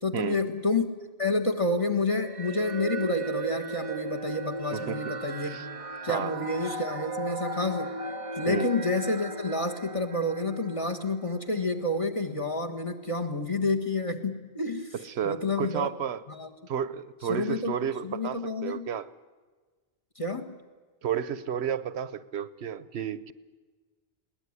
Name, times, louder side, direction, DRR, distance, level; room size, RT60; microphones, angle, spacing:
voice 1, 0.0-0.9 1.2-5.7 6.0-8.0 8.3-14.9 15.2-15.9 16.3-16.5 17.3-18.9 20.1-20.6, left 2 dB, 30° left, 7 dB, 1.6 m, -29 dB
sound 1, 2.1-11.6, right 2 dB, 35° right, 0.9 m, -37 dB
voice 2, 4.7-5.2 5.4-5.6 6.1-6.4 8.5-8.7 15.0-16.2 16.7-19.1 21.0-23.3, right 8 dB, 80° right, 16 dB, 1.1 m, -32 dB
21.5 x 18.0 x 9.7 m, 1.4 s
omnidirectional pair, 1.1 m